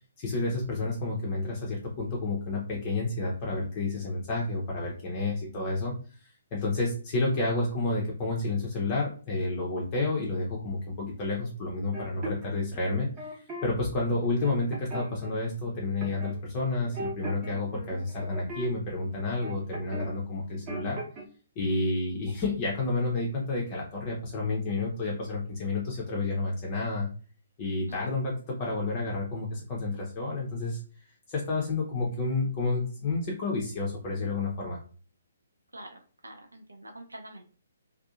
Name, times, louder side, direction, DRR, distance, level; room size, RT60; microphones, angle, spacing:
voice 1, 0.2-21.0 21.6-27.1 27.6-30.8 31.3-34.8, left 2 dB, 30° left, -3 dB, 0.5 m, -30 dB
sound 1, 11.9-13.7 14.1-15.3 16.0-16.4 16.6-20.1 20.4-21.2, right 1 dB, 25° right, 0.8 m, -39 dB
voice 2, 35.7-37.4, right 1 dB, 80° right, 3 dB, 0.5 m, -46 dB
2.6 x 2.3 x 2.4 m, 0.40 s
figure-of-eight pair, 130°, 0 cm